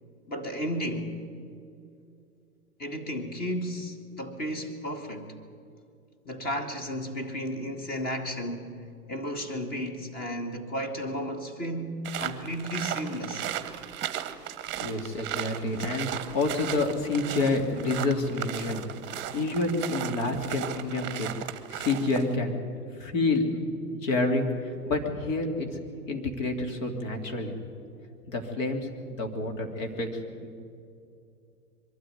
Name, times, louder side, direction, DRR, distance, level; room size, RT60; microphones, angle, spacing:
voice 1, 0.3-1.1 2.8-5.3 6.3-8.7 9.1-13.5, equal, 20° left, 2.1 m, -33 dB
sound 1, 12.0-22.4, right 11 dB, 25° right, 1.2 m, -36 dB
voice 2, 14.8-18.9 19.1-21.3 21.7-22.6 23.0-25.7 26.1-27.6 28.3-28.9 29.2-30.1 30.4-30.5, left 2 dB, 55° left, 3.2 m, -28 dB
23.5 x 13.0 x 9.4 m
hypercardioid pair, 115°, 47 cm